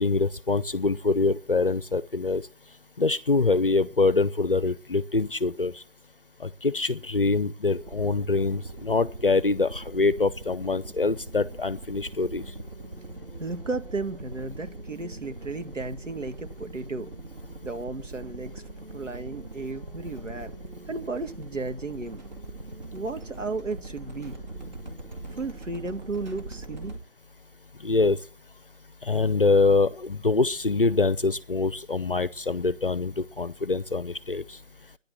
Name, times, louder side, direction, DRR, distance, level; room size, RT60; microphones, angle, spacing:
voice 1, 0.0-2.4 3.0-5.8 6.4-12.4 27.8-28.2 29.0-34.6, left 3 dB, 50° left, 0.6 m, -24 dB
sound 1, 7.8-27.0, right 2 dB, 35° right, 2.3 m, -41 dB
voice 2, 13.4-17.1 17.6-18.6 18.9-20.5 20.9-22.2 22.9-24.4 25.3-26.9, right 3 dB, 85° right, 1.9 m, -34 dB
11.5 x 10.5 x 7.6 m
figure-of-eight pair, 165°, 37 cm